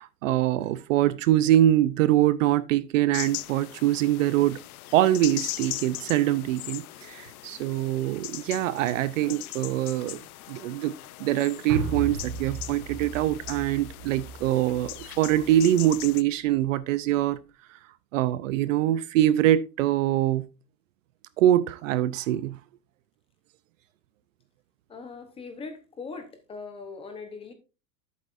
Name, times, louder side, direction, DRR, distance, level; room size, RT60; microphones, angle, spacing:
voice 1, 0.0-4.6 4.9-10.2 10.5-17.4 18.1-20.5 21.4-22.6, right 13 dB, 50° right, 0.6 m, -24 dB
sound 1, 3.1-16.2, left 17 dB, 60° left, 0.6 m, -40 dB
sound 2, 11.7-16.1 16.5-16.6, right 4 dB, 65° right, 3.5 m, -36 dB
voice 2, 24.9-27.5, left 4 dB, 10° left, 0.8 m, -40 dB
11.0 x 8.4 x 2.5 m
supercardioid pair, 165°, 49 cm